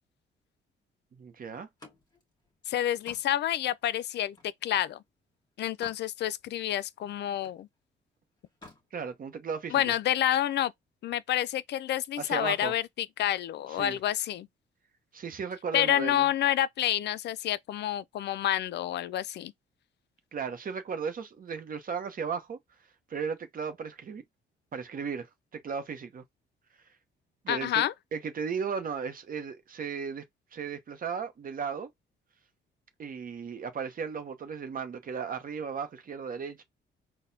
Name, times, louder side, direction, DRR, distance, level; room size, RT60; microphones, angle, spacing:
voice 1, 1.1-1.7 8.9-9.9 12.2-12.7 13.7-14.0 15.1-16.3 20.3-22.6 23.1-24.2 24.7-26.2 27.4-27.8 28.1-30.2 30.5-31.9 33.0-36.6, right 6 dB, 45° right, 0.8 m, -35 dB
Slam, 1.5-5.0 5.4-6.1 6.5-7.7 8.4-8.9, left 2 dB, 20° left, 1.6 m, -54 dB
voice 2, 2.7-4.4 4.6-5.0 5.6-7.7 9.7-10.7 11.0-14.5 15.7-19.5 27.5-27.9, left 12 dB, 60° left, 0.4 m, -28 dB
3.9 x 2.2 x 2.6 m
cardioid pair, 90°, 20 cm